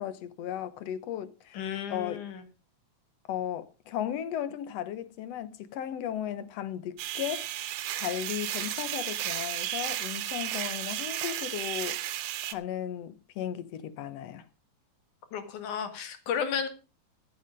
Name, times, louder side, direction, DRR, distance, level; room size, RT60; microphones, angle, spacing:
voice 1, 0.0-1.6 1.9-2.3 3.3-7.7 8.0-12.0 12.4-14.5, left 10 dB, 65° left, 1.9 m, -35 dB
voice 2, 1.5-2.4 15.3-16.7, left 7 dB, 90° left, 3.2 m, -33 dB
sound 1, 7.0-12.5, right 13 dB, 85° right, 2.3 m, -34 dB
15.0 x 8.5 x 5.2 m
omnidirectional pair, 3.4 m